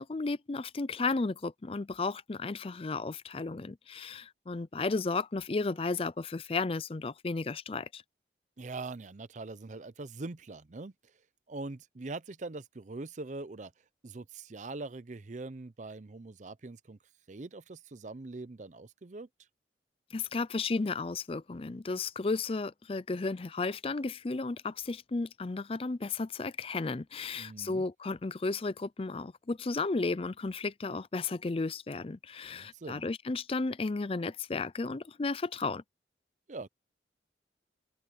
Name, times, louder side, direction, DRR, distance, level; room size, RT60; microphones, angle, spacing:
voice 1, 0.0-8.0 20.1-35.8, left 3 dB, 30° left, 0.5 m, -33 dB
voice 2, 8.6-11.1 11.5-13.7 14.0-17.0 17.3-19.3 27.3-27.8 32.5-33.0 36.5-36.7, right 3 dB, 45° right, 0.6 m, -42 dB
head